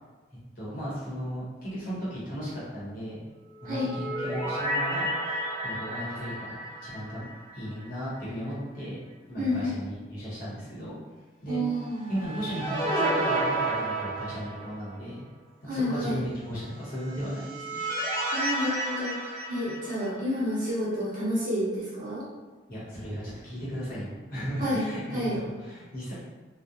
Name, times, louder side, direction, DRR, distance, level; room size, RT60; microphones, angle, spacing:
voice 1, 0.6-3.2 3.6-7.3 7.5-9.0 9.3-11.0 11.4-11.6 12.1-15.2 15.6-17.8 22.7-26.1, equal, 45° left, -9 dB, 0.9 m, -36 dB
sound 1, 3.6-7.9 8.2-8.3 11.8-14.9 17.0-20.4, right 1 dB, 15° left, 0.7 m, -31 dB
voice 2, 9.4-9.8 11.5-12.1 15.6-16.2 18.3-19.2 19.5-22.2 24.6-24.9 25.1-25.4, equal, 40° right, -7 dB, 0.7 m, -29 dB
2.4 x 2.1 x 2.7 m, 1.2 s
head